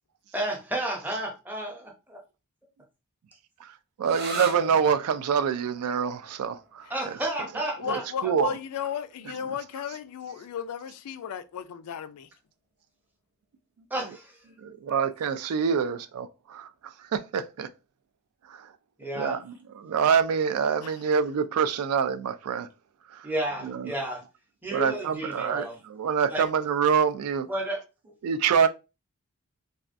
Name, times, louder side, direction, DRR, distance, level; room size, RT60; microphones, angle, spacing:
voice 1, 0.3-1.9 6.9-8.0 13.9-14.4 14.9-15.1 19.0-19.4 23.2-24.2 24.6-25.8 26.3-26.5 27.5-28.1, right 1 dB, 10° right, 0.7 m, -32 dB
sound 1, 4.0-11.4, right 3 dB, 45° right, 0.7 m, -42 dB
voice 2, 4.0-7.1 7.8-8.5 14.6-17.7 18.5-18.7 19.2-19.4 19.8-22.7 23.1-23.3 23.6-23.9 24.7-27.5 28.2-28.7, right 6 dB, 75° right, 0.3 m, -26 dB
voice 3, 7.8-12.3 20.8-20.9, left 8 dB, 85° left, 0.3 m, -35 dB
3.4 x 2.3 x 2.5 m
head